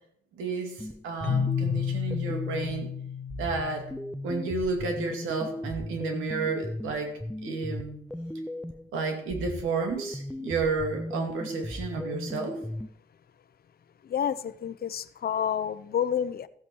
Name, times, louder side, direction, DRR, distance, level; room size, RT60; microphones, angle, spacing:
voice 1, 0.3-2.9 3.4-3.9 4.2-7.1 7.4-8.0 8.9-12.7, right 4 dB, 90° right, 4 dB, 2.5 m, -31 dB
sound 1, 0.8-2.9 3.3-8.9 9.3-12.9, left 1 dB, ahead, 0.4 m, -37 dB
Keyboard (musical), 1.2-4.9, left 7 dB, 85° left, 0.8 m, -32 dB
voice 2, 14.1-16.5, left 8 dB, 50° left, 14 dB, 0.7 m, -29 dB
14.5 x 8.5 x 4.6 m, 0.68 s
cardioid pair, 90°, 20 cm